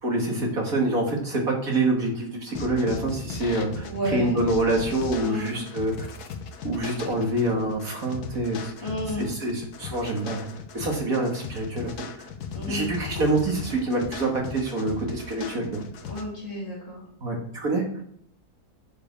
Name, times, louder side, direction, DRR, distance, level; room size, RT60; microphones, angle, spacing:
voice 1, 0.0-6.2 6.6-8.9 9.2-10.5 10.7-11.9 12.2-12.3 12.7-15.8 17.2-18.0, right 2 dB, 60° right, 0 dB, 2.5 m, -26 dB
sound 1, 2.5-16.2, left 5 dB, 75° left, 1.5 m, -37 dB
voice 2, 3.8-4.4 5.2-5.5 8.8-9.3 12.5-12.9 16.1-17.0, equal, 30° left, -4 dB, 3.7 m, -31 dB
10.0 x 6.9 x 4.8 m, 0.66 s
omnidirectional pair, 1.6 m